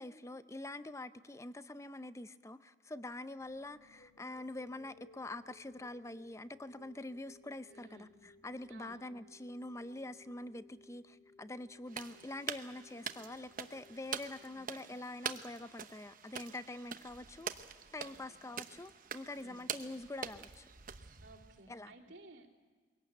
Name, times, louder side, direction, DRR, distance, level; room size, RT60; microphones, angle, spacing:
voice 1, 0.0-17.5 17.9-20.7 21.7-21.9, left 2 dB, 15° left, 13 dB, 0.6 m, -45 dB
sound 1, 3.4-15.4, left 2 dB, 80° left, 4.1 m, -63 dB
voice 2, 7.7-8.1 8.7-9.0 14.4-14.6 18.0-18.4 19.4-19.7 21.2-22.5, right 2 dB, 90° right, -3 dB, 3.1 m, -57 dB
sound 2, 11.9-21.6, right 7 dB, 50° right, 0.9 m, -45 dB
22.5 x 17.5 x 8.0 m, 1.5 s
head